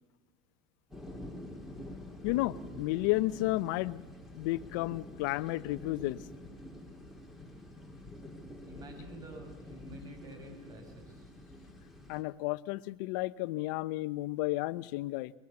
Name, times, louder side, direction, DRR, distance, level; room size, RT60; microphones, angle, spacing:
sound 1, 0.9-12.2, left 1 dB, ahead, 4.4 m, -47 dB
voice 1, 2.2-4.0 4.3-6.2 12.1-15.3, left 19 dB, 75° left, 17 dB, 0.7 m, -32 dB
voice 2, 8.6-11.3, right 1 dB, 40° right, 5 dB, 6.9 m, -49 dB
22.5 x 21.5 x 7.1 m, 1.1 s
supercardioid pair, 115°, 10 cm